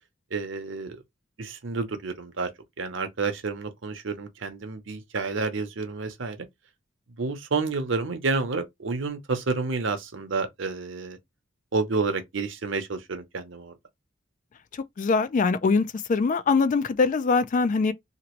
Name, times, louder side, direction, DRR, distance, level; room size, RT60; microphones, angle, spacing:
voice 1, 0.3-1.0 1.4-2.5 2.8-6.4 7.2-11.2 11.7-13.7, right 4 dB, 70° right, 0.7 m, -29 dB
voice 2, 14.7-17.9, left 4 dB, 40° left, 0.3 m, -23 dB
2.9 x 2.5 x 3.0 m
head